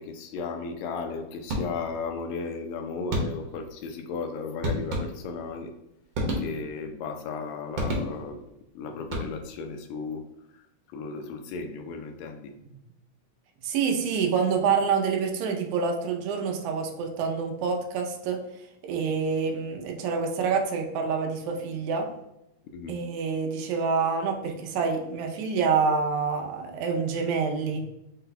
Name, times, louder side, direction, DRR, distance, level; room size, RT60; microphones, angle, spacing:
voice 1, 0.0-5.7 6.4-8.5 8.7-10.2 10.5-10.6 10.9-12.5 22.7-23.0, left 4 dB, 80° left, 5 dB, 1.7 m, -35 dB
sound 1, 1.5-2.1 3.1-3.7 4.6-5.5 6.1-6.9 7.8-8.5 9.0-9.7, equal, 60° right, 1.7 m, -31 dB
voice 2, 13.6-18.4 18.8-22.1 22.9-27.9, right 5 dB, 85° right, 3 dB, 2.1 m, -27 dB
5.3 x 2.2 x 3.9 m, 0.84 s
omnidirectional pair, 3.3 m